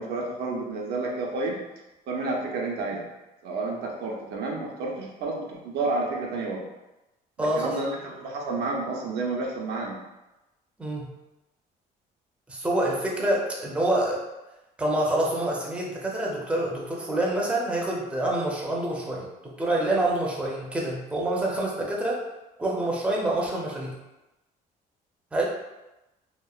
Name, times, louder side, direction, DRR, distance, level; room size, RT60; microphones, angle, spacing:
voice 1, 0.0-1.6 2.1-3.1 3.4-6.6 7.4-10.0, right 3 dB, 75° right, -1 dB, 0.6 m, -30 dB
voice 2, 7.4-7.8 10.8-11.2 12.5-14.2 14.8-22.2 22.6-24.0 25.3-25.4, right 1 dB, 5° right, -3 dB, 0.5 m, -27 dB
2.9 x 2.0 x 2.3 m, 0.99 s
cardioid pair, 110°, 17 cm